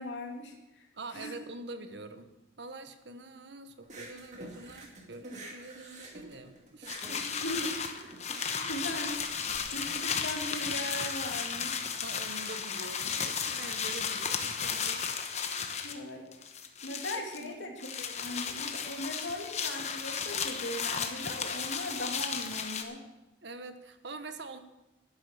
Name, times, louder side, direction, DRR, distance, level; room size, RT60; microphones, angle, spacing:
voice 1, 0.0-0.9 1.1-1.4 7.1-9.4 9.7-11.9 15.8-16.3 16.8-23.0, left 1 dB, 85° left, 2 dB, 2.5 m, -39 dB
voice 2, 0.9-2.3 2.6-7.3 8.5-8.7 12.0-15.1 16.9-17.0 17.4-17.6 23.4-24.6, right 2 dB, 70° right, 9 dB, 1.1 m, -45 dB
sound 1, 3.8-9.6, right 2 dB, 40° right, 2.4 m, -48 dB
sound 2, 6.9-16.0 16.3-17.5 17.8-22.8, left 6 dB, 35° left, 1.0 m, -34 dB
12.0 x 10.5 x 6.7 m, 0.96 s
head